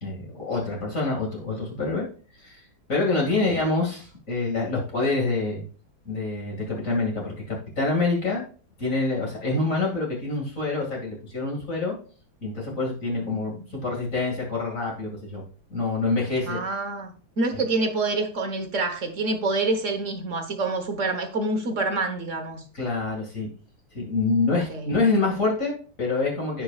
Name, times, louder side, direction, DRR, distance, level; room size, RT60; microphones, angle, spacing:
voice 1, 0.0-2.1 2.4-2.6 2.9-5.6 6.0-8.4 8.8-12.0 12.4-15.4 15.7-16.6 17.5-17.6 22.7-23.5 23.9-26.6, left 3 dB, 40° left, 2.7 m, -26 dB
voice 2, 3.2-3.6 13.2-13.6 16.4-22.6 24.7-24.9, right 3 dB, 45° right, 1.4 m, -27 dB
16.5 x 5.4 x 2.4 m
omnidirectional pair, 2.1 m